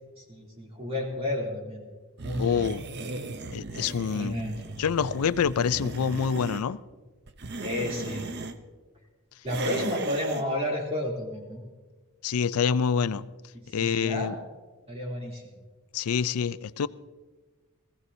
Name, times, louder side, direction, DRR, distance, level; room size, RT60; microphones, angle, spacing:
voice 1, 0.2-1.8 2.2-2.7 4.1-4.6 7.6-8.3 9.4-11.6 13.8-14.4 14.9-15.5, left 1 dB, 25° right, -2 dB, 2.9 m, -31 dB
sound 1, 2.2-6.6 7.3-8.6 9.5-10.5, right 2 dB, 50° right, 0.7 m, -36 dB
voice 2, 2.4-2.8 3.5-4.4 4.8-6.8 9.7-9.9 12.2-13.2 13.7-14.4 15.9-16.9, left 6 dB, 85° left, 16 dB, 0.4 m, -26 dB
20.0 x 15.0 x 2.7 m, 1.3 s
head